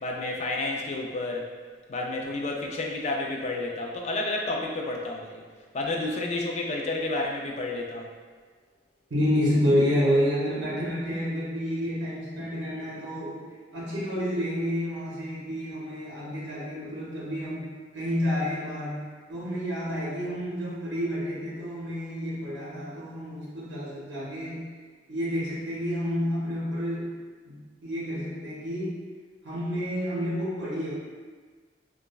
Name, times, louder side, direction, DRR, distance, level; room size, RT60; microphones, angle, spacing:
voice 1, 0.0-1.5 1.9-5.4 5.7-8.1, left 2 dB, 40° left, 0 dB, 0.3 m, -30 dB
voice 2, 9.1-13.4 13.7-17.7 17.9-24.7 25.1-27.2 27.5-29.0 29.4-30.9, equal, 80° right, -7 dB, 0.7 m, -29 dB
3.0 x 2.3 x 2.3 m, 1.5 s
head